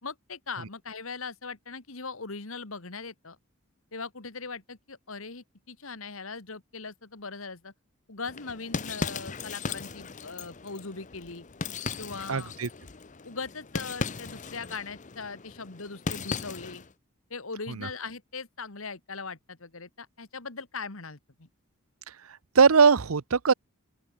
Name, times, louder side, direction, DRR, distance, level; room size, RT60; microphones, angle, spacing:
voice 1, 0.0-3.4 3.9-7.7 8.1-11.4 12.0-12.5 13.2-16.8 17.3-21.5, left 4 dB, 80° left, 2.0 m, -40 dB
sound 1, 8.2-16.9, left 4 dB, 35° left, 0.8 m, -37 dB
voice 2, 12.3-12.7 22.5-23.5, right 5 dB, 90° right, 0.8 m, -20 dB
open air
head